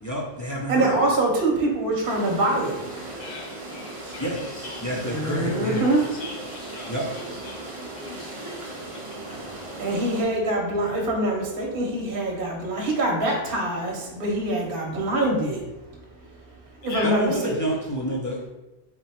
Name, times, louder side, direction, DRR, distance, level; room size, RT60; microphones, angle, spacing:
voice 1, 0.0-1.0 4.2-5.9 6.9-7.1 17.0-18.5, equal, 20° left, -5 dB, 0.5 m, -29 dB
voice 2, 0.7-3.1 5.1-6.0 7.6-7.7 8.1-8.3 9.3-15.6 16.8-17.5, right 1 dB, 55° right, -1 dB, 1.0 m, -25 dB
sound 1, 2.0-10.2, right 2 dB, 35° right, 0.6 m, -38 dB
voice 3, 3.1-4.9 5.7-8.7 16.8-17.1, left 3 dB, 50° left, -1 dB, 0.9 m, -40 dB
4.2 x 2.2 x 4.2 m, 1.0 s
omnidirectional pair, 1.2 m